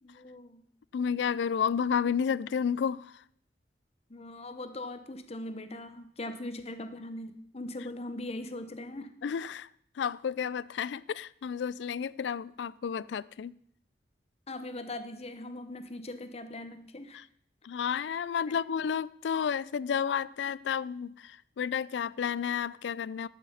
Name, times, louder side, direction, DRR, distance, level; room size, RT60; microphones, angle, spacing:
voice 1, 0.0-0.6 4.1-9.1 14.5-17.2 18.5-18.6, left 1 dB, 35° left, 0.9 m, -40 dB
voice 2, 0.9-3.2 9.2-9.7 10.0-13.5 17.1-17.2 17.6-23.3, left 7 dB, 80° left, 0.4 m, -31 dB
12.0 x 7.4 x 5.6 m
head